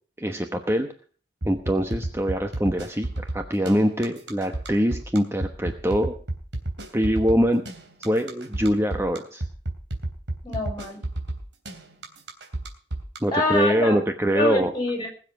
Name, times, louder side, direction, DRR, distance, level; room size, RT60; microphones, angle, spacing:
voice 1, 0.2-0.9 1.4-6.1 6.9-7.6 8.0-9.4 13.2-14.7, equal, 15° right, 5 dB, 1.0 m, -23 dB
sound 1, 1.4-13.2, right 1 dB, 80° right, 3.2 m, -31 dB
voice 2, 10.4-11.0 13.3-14.0 14.3-15.1, left 2 dB, 25° left, 2 dB, 7.1 m, -25 dB
20.5 x 7.5 x 6.1 m, 0.42 s
head